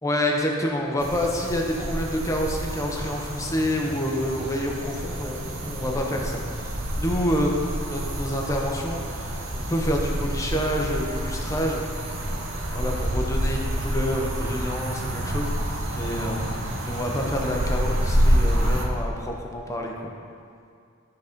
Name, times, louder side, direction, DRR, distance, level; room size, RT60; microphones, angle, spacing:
voice 1, 0.0-9.3 9.5-11.8 12.7-19.9, equal, 15° left, 0 dB, 0.8 m, -28 dB
sound 1, 1.0-18.8, equal, 70° right, 1.1 m, -28 dB
12.0 x 4.1 x 5.1 m, 2.3 s
head